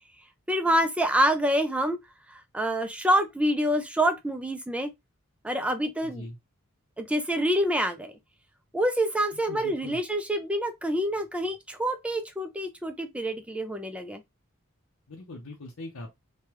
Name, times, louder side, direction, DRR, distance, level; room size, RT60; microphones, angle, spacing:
voice 1, 0.5-2.0 2.3-4.9 5.4-6.3 7.0-8.1 8.7-14.2, equal, 5° right, 0.4 m, -26 dB
voice 2, 6.0-6.4 9.3-10.0 15.1-16.1, left 1 dB, 70° left, 0.7 m, -41 dB
3.2 x 2.2 x 2.9 m
head